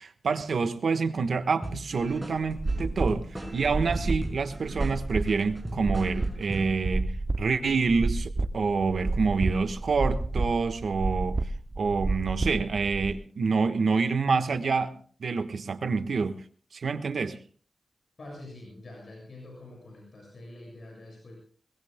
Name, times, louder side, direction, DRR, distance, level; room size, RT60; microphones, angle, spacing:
voice 1, 0.0-3.3 3.5-7.1 7.4-11.4 11.8-14.9 15.2-16.4 16.7-17.4, right 4 dB, 75° right, 9 dB, 1.3 m, -27 dB
sound 1, 1.6-6.8, right 1 dB, 10° right, 5.6 m, -39 dB
sound 2, 2.5-13.1, right 2 dB, 35° right, 0.9 m, -30 dB
voice 2, 18.2-21.4, left 1 dB, 60° left, -1 dB, 7.4 m, -45 dB
22.5 x 21.0 x 2.2 m, 0.44 s
wide cardioid pair, 80°, 0 cm